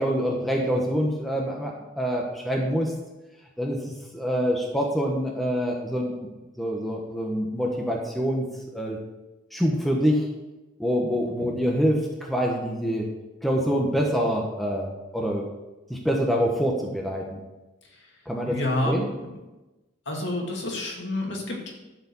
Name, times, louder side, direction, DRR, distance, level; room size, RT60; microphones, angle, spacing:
voice 1, 0.0-2.9 3.6-3.8 4.1-6.1 6.6-8.5 8.7-9.0 9.5-10.3 10.8-13.1 13.4-15.4 15.9-17.4 18.3-18.6 18.8-19.1, equal, ahead, -1 dB, 1.1 m, -25 dB
voice 2, 18.4-19.0 20.1-21.7, left 1 dB, 60° left, 0 dB, 2.3 m, -28 dB
11.5 x 4.9 x 7.1 m, 1.1 s
head